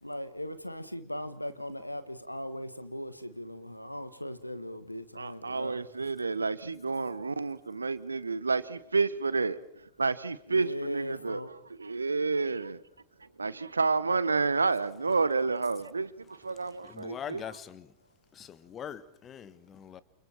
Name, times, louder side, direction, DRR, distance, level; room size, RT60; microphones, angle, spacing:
voice 1, 0.0-5.8 10.5-11.5, equal, 85° left, 1.6 m, -38 dB
voice 2, 5.2-11.4 11.8-12.8 13.4-17.6, right 4 dB, 80° right, 1.1 m, -30 dB
voice 3, 16.9-17.8 18.4-20.0, left 8 dB, 25° left, 1.5 m, -42 dB
29.5 x 28.5 x 4.6 m
figure-of-eight pair, 90°, 0 cm